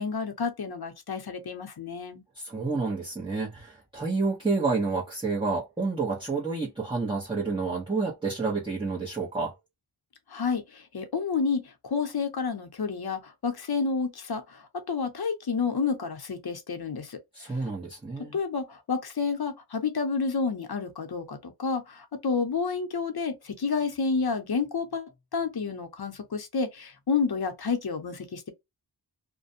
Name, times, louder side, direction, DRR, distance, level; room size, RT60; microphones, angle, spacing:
voice 1, 0.0-2.2 10.3-17.2 18.3-28.5, left 5 dB, 60° left, 0.7 m, -30 dB
voice 2, 2.3-9.5 17.3-18.4, right 4 dB, 10° right, 0.9 m, -29 dB
2.5 x 2.2 x 2.6 m
wide cardioid pair, 55°, 42 cm